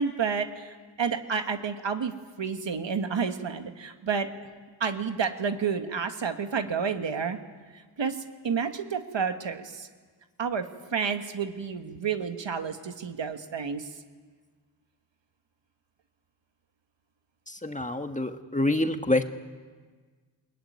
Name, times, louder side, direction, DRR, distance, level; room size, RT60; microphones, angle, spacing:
voice 1, 0.0-2.1 2.4-4.3 4.8-7.4 7.7-8.2 8.4-9.9 10.4-10.7 10.9-13.9, right 6 dB, 75° right, 7 dB, 1.8 m, -30 dB
voice 2, 17.5-19.2, left 1 dB, 15° left, 7 dB, 1.7 m, -27 dB
21.5 x 19.5 x 9.4 m, 1.5 s
cardioid pair, 40°, 45 cm